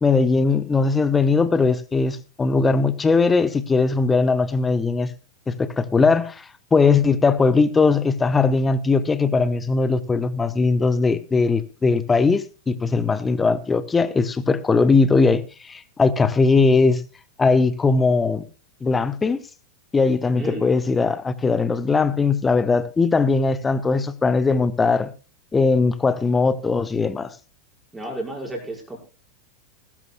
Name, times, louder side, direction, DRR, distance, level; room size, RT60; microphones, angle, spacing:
voice 1, 0.0-5.1 5.5-6.4 6.7-17.0 17.4-18.4 18.8-19.4 19.9-25.1 25.5-27.3, left 4 dB, 15° left, 1.0 m, -19 dB
voice 2, 20.3-20.7 27.9-29.0, right 1 dB, 10° right, 5.7 m, -32 dB
21.0 x 12.5 x 2.3 m
figure-of-eight pair, 90°, 0 cm